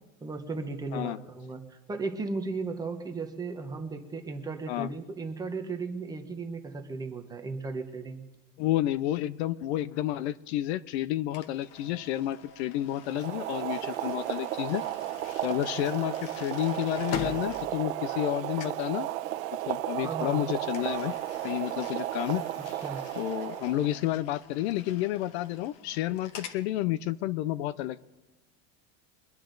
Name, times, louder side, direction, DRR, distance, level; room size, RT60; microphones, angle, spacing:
voice 1, 0.2-8.2 20.0-20.4 22.8-23.0, right 3 dB, 10° right, 6 dB, 0.8 m, -36 dB
voice 2, 8.6-14.8 15.4-19.1 19.7-21.1 21.4-22.5 23.2-28.0, left 14 dB, 55° left, 16 dB, 0.5 m, -30 dB
sound 1, 11.3-18.3 18.6-18.9 20.7-26.6, left 8 dB, 40° left, 1.1 m, -44 dB
Boiling, 13.0-24.0, right 14 dB, 85° right, 1.0 m, -34 dB
23.5 x 10.5 x 3.9 m, 1.1 s
supercardioid pair, 165°, 39 cm